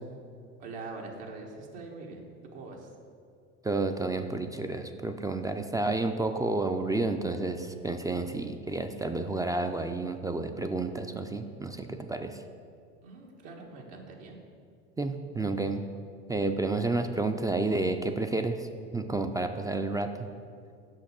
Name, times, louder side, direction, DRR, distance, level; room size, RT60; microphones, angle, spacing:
voice 1, 0.6-2.2 2.5-2.9 13.0-14.4, right 3 dB, 75° right, 0 dB, 1.5 m, -43 dB
voice 2, 3.6-12.4 15.0-15.8 16.3-20.3, right 2 dB, 10° right, 7 dB, 0.3 m, -30 dB
6.5 x 5.2 x 6.5 m, 2.3 s
supercardioid pair, 90°, 35 cm